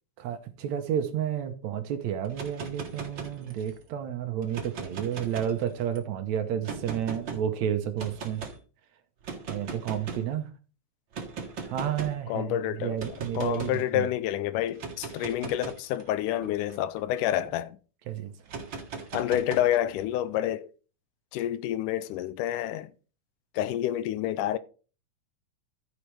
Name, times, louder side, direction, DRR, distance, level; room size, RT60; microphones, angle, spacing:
voice 1, 0.2-8.4 9.4-10.5 11.7-14.1 18.1-18.3, right 9 dB, 70° right, 1.9 m, -31 dB
sound 1, 2.2-3.8 4.4-6.0 6.6-7.4 8.0-8.6 9.2-10.3 11.1-12.2 13.0-13.8 14.7-17.5 18.5-20.0, right 4 dB, 45° right, 1.8 m, -39 dB
voice 2, 12.3-13.0 13.4-17.8 19.1-20.7 21.3-22.9 23.5-24.6, left 12 dB, 85° left, 2.1 m, -28 dB
14.0 x 6.3 x 3.3 m
omnidirectional pair, 3.7 m